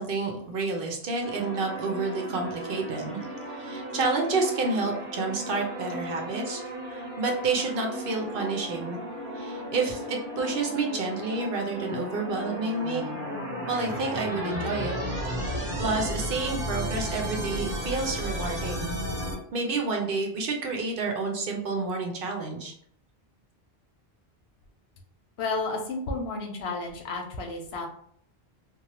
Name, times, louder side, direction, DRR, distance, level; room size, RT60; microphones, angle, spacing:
voice 1, 0.0-3.2 3.5-9.0 9.4-13.0 13.7-15.0 15.5-18.9 19.5-22.7, right 3 dB, 65° right, 2 dB, 0.8 m, -29 dB
sound 1, 1.2-19.3, equal, 5° right, 1.0 m, -34 dB
voice 2, 25.4-27.9, left 3 dB, 85° left, 3 dB, 0.9 m, -32 dB
3.0 x 2.1 x 2.9 m, 0.64 s
omnidirectional pair, 1.0 m